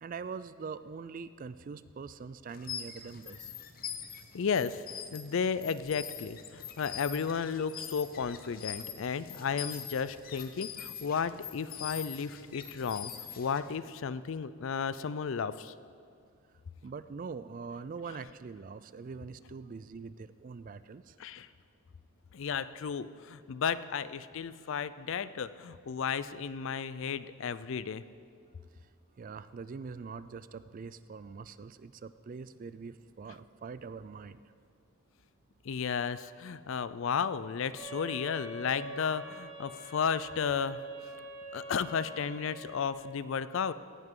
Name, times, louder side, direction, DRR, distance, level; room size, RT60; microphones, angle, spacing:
voice 1, 0.0-3.5 16.8-21.1 29.2-34.4, right 5 dB, 40° right, 15 dB, 0.3 m, -43 dB
sound 1, 2.5-13.8, left 8 dB, 40° left, 0.7 m, -44 dB
voice 2, 4.3-4.8 5.1-15.7 21.2-21.5 22.3-28.0 35.6-40.8 41.5-43.7, left 6 dB, 60° left, 15 dB, 0.4 m, -33 dB
sound 2, 37.7-42.9, right 2 dB, 55° right, 2.0 m, -45 dB
17.5 x 10.5 x 3.8 m, 2.3 s
head